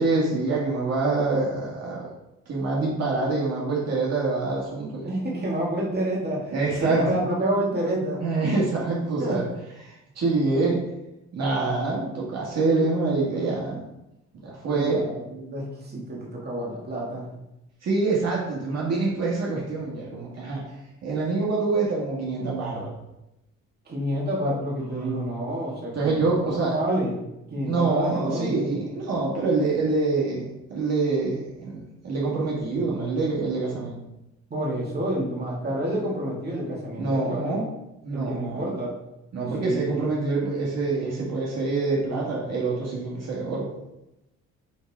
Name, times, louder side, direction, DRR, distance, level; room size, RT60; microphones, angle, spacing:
voice 1, 0.0-2.1 2.5-5.1 6.5-7.0 8.2-9.4 9.8-10.8 11.3-13.8 14.4-15.1 17.8-20.6 21.0-22.9 24.8-25.2 25.9-26.8 27.6-30.4 30.7-34.0 37.0-37.7 38.0-38.7 39.3-43.7, right 3 dB, 55° right, -4 dB, 1.9 m, -26 dB
voice 2, 5.0-6.5 6.8-8.2 9.2-9.4 14.7-17.3 23.9-27.2 27.5-28.7 34.5-37.5 38.1-39.0 39.6-40.1, right 1 dB, 35° right, -3 dB, 2.2 m, -28 dB
9.4 x 3.7 x 3.7 m, 0.91 s
cardioid pair, 90°, 30 cm